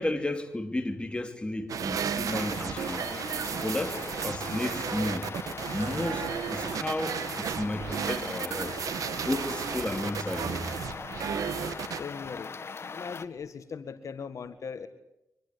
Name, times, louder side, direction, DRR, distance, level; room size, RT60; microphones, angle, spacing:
voice 1, 0.0-3.1 3.6-5.3 5.7-8.8 9.3-10.6 11.0-11.3, left 1 dB, 15° left, 3.1 m, -33 dB
sound 1, 1.7-12.0, right 7 dB, 80° right, 1.9 m, -33 dB
sound 2, 2.3-13.3, left 5 dB, 45° left, 1.6 m, -40 dB
voice 2, 11.9-12.6 12.9-14.9, left 6 dB, 65° left, 1.7 m, -39 dB
25.0 x 20.5 x 9.8 m
cardioid pair, 85°, 6 cm